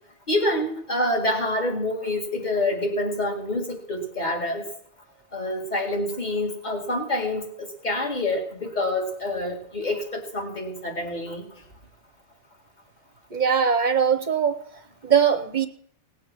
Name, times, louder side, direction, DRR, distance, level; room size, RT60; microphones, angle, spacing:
voice 1, 0.3-4.7 5.3-11.5, left 1 dB, 30° left, 2.1 m, -27 dB
voice 2, 13.3-14.6 15.0-15.7, right 7 dB, 40° right, 0.8 m, -21 dB
18.0 x 7.2 x 6.0 m
omnidirectional pair, 1.4 m